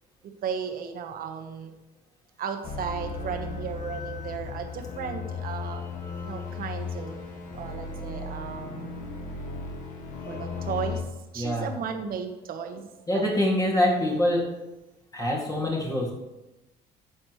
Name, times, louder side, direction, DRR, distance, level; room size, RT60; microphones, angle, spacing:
voice 1, 0.2-1.7 2.4-5.9 6.2-7.3 7.5-8.9 10.3-11.0 11.3-13.3, right 6 dB, 60° right, 6 dB, 1.2 m, -35 dB
sound 1, 2.6-11.0, left 4 dB, 50° left, 1.9 m, -36 dB
voice 2, 11.4-11.7 13.1-14.5 15.1-16.1, left 1 dB, 20° left, -3 dB, 2.3 m, -25 dB
11.5 x 7.3 x 3.2 m, 1.0 s
cardioid pair, 110°, 17 cm